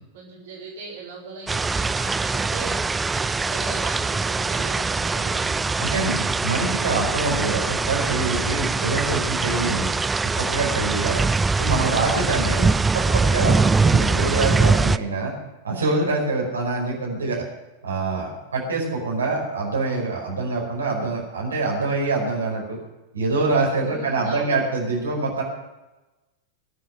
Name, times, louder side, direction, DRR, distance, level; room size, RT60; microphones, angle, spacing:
voice 1, 0.1-6.1 8.7-9.8 11.0-11.3 23.8-24.6, right 3 dB, 55° right, -4 dB, 4.7 m, -38 dB
sound 1, 1.5-15.0, right 4 dB, 10° right, 0.4 m, -22 dB
voice 2, 5.8-9.9 10.4-11.2 11.6-15.3 15.6-17.4 17.8-22.8 23.1-25.4, right 3 dB, 70° right, -2 dB, 5.0 m, -25 dB
21.5 x 8.6 x 6.0 m, 1.1 s
figure-of-eight pair, 90°, 0 cm